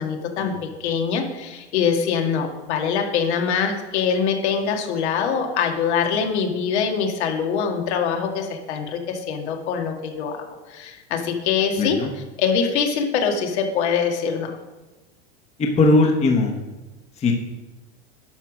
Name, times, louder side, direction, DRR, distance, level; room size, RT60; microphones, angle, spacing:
voice 1, 0.0-12.0 12.4-14.5, left 6 dB, 75° left, 2 dB, 1.9 m, -24 dB
voice 2, 11.8-12.1 15.6-16.5 17.2-17.4, left 2 dB, 20° left, 2 dB, 1.0 m, -19 dB
10.5 x 5.0 x 6.2 m, 1.2 s
supercardioid pair, 150°, 34 cm